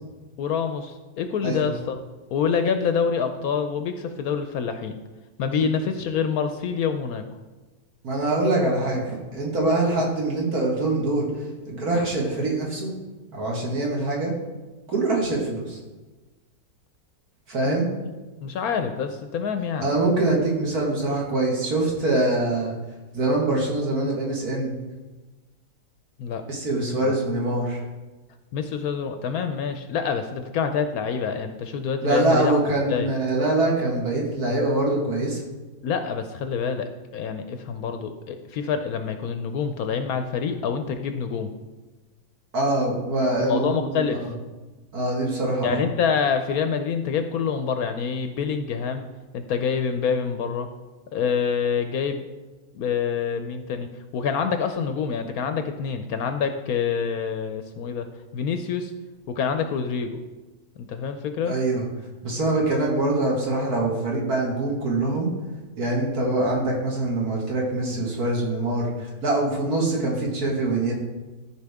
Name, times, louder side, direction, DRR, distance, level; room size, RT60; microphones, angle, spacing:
voice 1, 0.4-2.0 2.3-5.0 5.4-7.3 17.6-17.8 18.4-19.9 26.2-26.4 27.0-27.2 28.5-32.6 32.9-33.1 35.8-41.5 43.4-44.2 45.6-49.1 49.3-50.7 51.1-52.2 52.7-53.9 54.1-58.1 58.3-58.9 59.3-60.2 60.8-61.6, left 6 dB, 70° left, 7 dB, 1.0 m, -26 dB
voice 2, 8.0-11.3 11.7-12.9 13.3-14.3 14.9-15.8 17.5-17.9 19.8-22.7 23.1-24.8 26.5-27.8 32.0-35.4 42.5-44.3 44.9-45.9 61.4-61.8 62.2-65.3 65.8-70.9, right 2 dB, 60° right, -3 dB, 2.3 m, -24 dB
13.5 x 4.7 x 3.5 m, 1.2 s
omnidirectional pair, 1.8 m